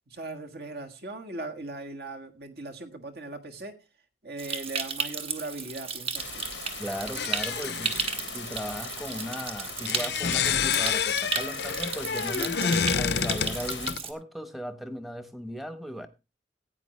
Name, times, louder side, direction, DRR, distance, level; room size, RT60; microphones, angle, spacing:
voice 1, 0.1-3.7 4.2-6.4, right 2 dB, 60° right, 1.6 m, -39 dB
Stream, 4.4-14.1, right 6 dB, 35° right, 1.1 m, -34 dB
sound 1, 6.1-13.9, left 7 dB, 90° left, 1.0 m, -41 dB
voice 2, 6.8-16.1, equal, ahead, 0.9 m, -37 dB
sound 2, 7.2-8.2 9.7-14.0, left 7 dB, 65° left, 0.6 m, -28 dB
15.5 x 9.0 x 3.2 m
head